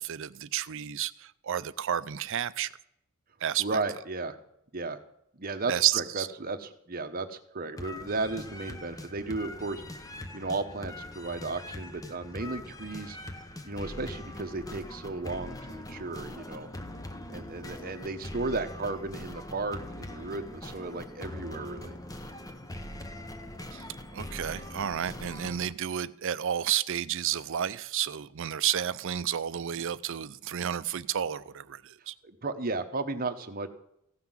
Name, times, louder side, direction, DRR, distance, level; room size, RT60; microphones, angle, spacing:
voice 1, 0.0-2.7 3.4-3.6 5.7-6.3 23.7-23.8 24.1-32.1, right 10 dB, 60° right, 0.5 m, -31 dB
voice 2, 3.6-4.4 4.7-5.0 5.3-9.8 10.3-13.2 13.6-16.7 17.3-21.9 32.2-33.7, right 3 dB, 40° right, 0.9 m, -34 dB
sound 1, 7.8-25.7, left 1 dB, 15° left, 0.8 m, -42 dB
15.5 x 5.9 x 7.3 m
head